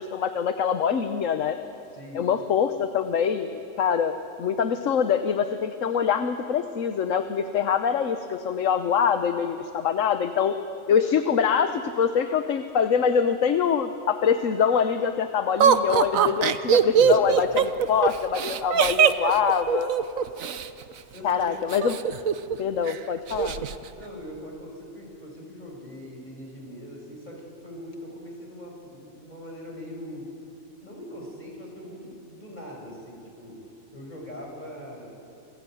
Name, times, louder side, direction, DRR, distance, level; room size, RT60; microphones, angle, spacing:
voice 1, 0.0-1.6 2.1-4.1 4.4-10.6 10.9-19.9 21.2-22.0 22.6-23.6, left 7 dB, 70° left, 8 dB, 1.3 m, -24 dB
voice 2, 1.9-2.3 16.9-17.3 21.0-21.6 23.5-30.3 30.8-35.1, equal, 30° left, -1 dB, 6.6 m, -41 dB
Laughter, 15.6-20.7 21.7-22.6 22.9-23.0 23.3-23.8, right 7 dB, 75° right, 1.3 m, -21 dB
28.0 x 20.0 x 9.3 m, 2.9 s
omnidirectional pair, 1.4 m